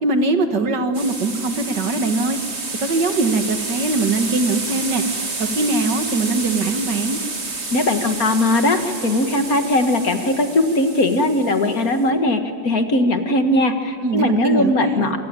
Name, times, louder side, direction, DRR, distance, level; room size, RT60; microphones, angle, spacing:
voice 1, 0.0-2.4 2.8-5.0 5.4-7.2 14.0-15.1, right 3 dB, 70° right, 7 dB, 2.3 m, -21 dB
sound 1, 0.9-12.0, right 3 dB, 35° right, 2.5 m, -30 dB
voice 2, 7.7-15.2, left 1 dB, 50° left, 6 dB, 2.1 m, -19 dB
27.0 x 24.0 x 9.0 m, 2.4 s
omnidirectional pair, 2.0 m